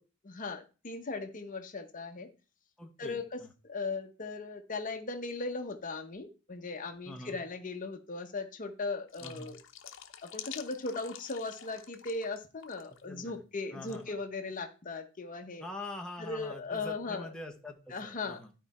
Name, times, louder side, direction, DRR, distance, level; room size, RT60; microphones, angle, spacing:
voice 1, 0.2-2.3 3.0-9.6 10.2-15.6 16.2-17.3 17.9-18.4, left 3 dB, 40° left, 6 dB, 0.9 m, -38 dB
voice 2, 2.8-3.5 7.0-7.4 9.2-9.5 13.1-13.4 13.7-14.2 15.6-18.5, left 1 dB, 5° left, 1 dB, 1.0 m, -44 dB
sound 1, 9.1-12.4 12.6-13.0 13.9-14.0, left 10 dB, 65° left, 0.8 m, -48 dB
12.5 x 4.6 x 4.2 m, 0.33 s
head